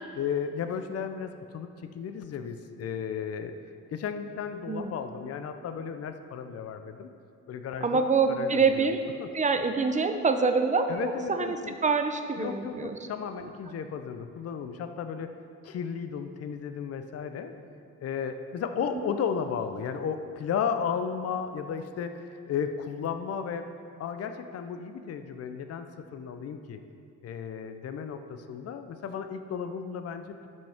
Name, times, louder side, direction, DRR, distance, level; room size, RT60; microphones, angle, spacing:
voice 1, 0.1-3.5 3.9-7.1 7.5-8.0 8.3-8.9 9.2-9.3 10.9-11.7 12.4-15.4 15.6-17.5 18.0-23.7 24.0-26.8 27.2-30.5, left 7 dB, 55° left, 8 dB, 0.6 m, -34 dB
voice 2, 7.8-9.0 9.3-11.6 11.8-13.0 18.9-19.1, right 4 dB, 25° right, 7 dB, 0.6 m, -25 dB
12.0 x 5.3 x 3.5 m, 2.4 s
cardioid pair, 90°, 30 cm